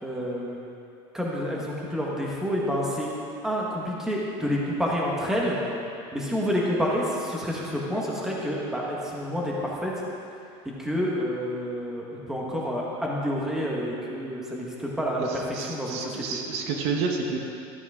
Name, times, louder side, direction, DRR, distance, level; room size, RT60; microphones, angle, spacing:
voice 1, 0.0-0.6 1.1-3.1 3.4-5.6 6.1-9.9 10.6-16.2, equal, 5° right, -4 dB, 1.4 m, -28 dB
voice 2, 15.2-17.4, right 4 dB, 60° right, 2 dB, 1.0 m, -30 dB
13.0 x 8.8 x 3.6 m, 2.6 s
cardioid pair, 155°, 12 cm